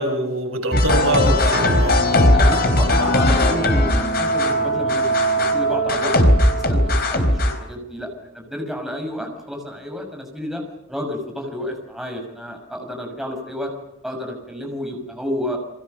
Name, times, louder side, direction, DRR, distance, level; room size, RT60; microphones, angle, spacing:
voice 1, 0.0-2.4, right 1 dB, 85° right, 3 dB, 7.1 m, -24 dB
sound 1, 0.7-7.6, left 1 dB, 50° left, 4.0 m, -18 dB
voice 2, 1.1-1.4 2.3-10.6 10.9-13.7 14.0-15.6, left 1 dB, ahead, 2 dB, 5.8 m, -30 dB
Piano, 1.5-7.7, right 1 dB, 55° right, 2.2 m, -34 dB
30.0 x 23.5 x 6.6 m, 0.89 s
head